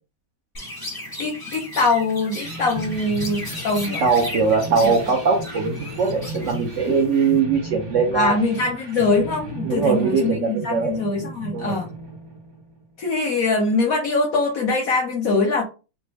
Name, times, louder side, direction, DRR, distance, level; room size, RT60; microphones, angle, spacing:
Chirp tweet, 0.5-7.4, left 1 dB, 20° left, 0.6 m, -36 dB
voice 1, 1.2-4.0 4.8-4.9 5.5-5.6 8.1-11.9 13.0-15.6, left 3 dB, 70° left, 1 dB, 0.8 m, -23 dB
sound 1, 2.4-12.9, right 1 dB, 50° right, 1.0 m, -35 dB
voice 2, 4.0-8.4 9.6-11.0 11.5-11.8, right 5 dB, 90° right, 0 dB, 0.6 m, -21 dB
3.2 x 2.1 x 3.3 m, 0.32 s
omnidirectional pair, 2.1 m